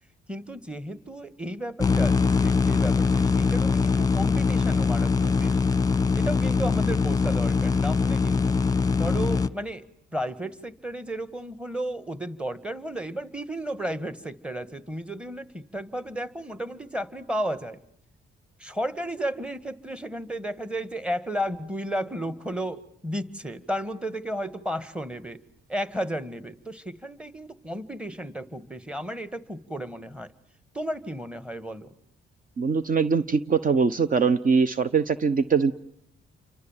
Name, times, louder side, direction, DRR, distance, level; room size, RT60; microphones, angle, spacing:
voice 1, 0.3-5.7 6.1-8.6 9.0-17.8 18.6-25.4 25.7-30.3 30.7-31.9, right 1 dB, 5° right, 14 dB, 1.9 m, -33 dB
sound 1, 1.8-9.5, left 4 dB, 20° left, 1.2 m, -22 dB
voice 2, 32.6-35.7, right 5 dB, 45° right, 13 dB, 1.2 m, -22 dB
29.5 x 25.0 x 7.5 m, 0.73 s
cardioid pair, 90°, 20 cm